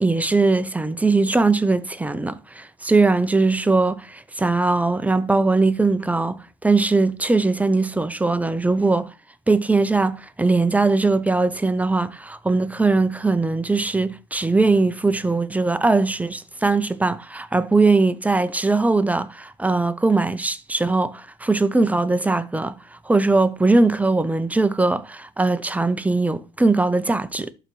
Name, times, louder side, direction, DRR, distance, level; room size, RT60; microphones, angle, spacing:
voice 1, 0.0-9.1 9.5-22.7 23.1-27.5, right 3 dB, 10° right, 0.5 m, -20 dB
11.5 x 3.9 x 3.1 m
cardioid pair, 110°, 17 cm